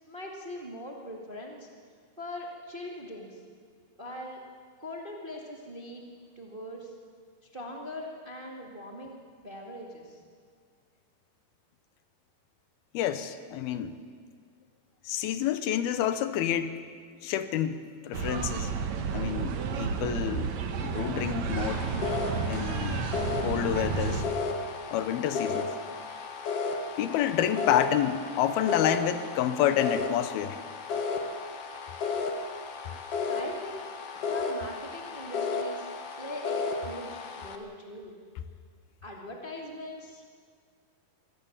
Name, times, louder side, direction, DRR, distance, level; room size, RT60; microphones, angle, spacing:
voice 1, 0.1-1.7 2.2-3.4 4.0-4.4 4.8-6.1 6.3-6.9 7.5-9.2 9.4-10.2 33.3-33.9 34.3-38.1 39.0-40.3, left 1 dB, 20° right, 0 dB, 1.4 m, -41 dB
voice 2, 12.9-14.0 15.1-16.8 17.2-17.8 18.0-18.7 19.1-20.5 20.8-21.9 22.5-23.1 23.4-24.3 24.9-25.7 27.0-30.6, left 10 dB, 80° left, 11 dB, 2.8 m, -28 dB
sound 1, 18.1-24.2, right 6 dB, 60° right, 2.0 m, -31 dB
sound 2, 21.6-37.6, left 4 dB, 55° left, 1.8 m, -34 dB
23.5 x 17.0 x 7.3 m, 2.1 s
omnidirectional pair, 4.4 m